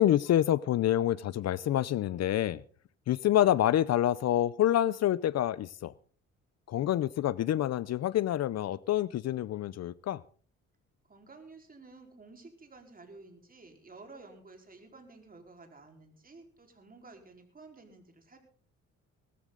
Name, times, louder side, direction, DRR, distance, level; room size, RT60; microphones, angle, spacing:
voice 1, 0.0-2.6 3.1-5.9 6.7-10.2, left 12 dB, 60° left, 0.6 m, -27 dB
voice 2, 11.1-18.4, right 3 dB, 30° right, 4.4 m, -52 dB
19.5 x 14.0 x 3.9 m
cardioid pair, 90°, 30 cm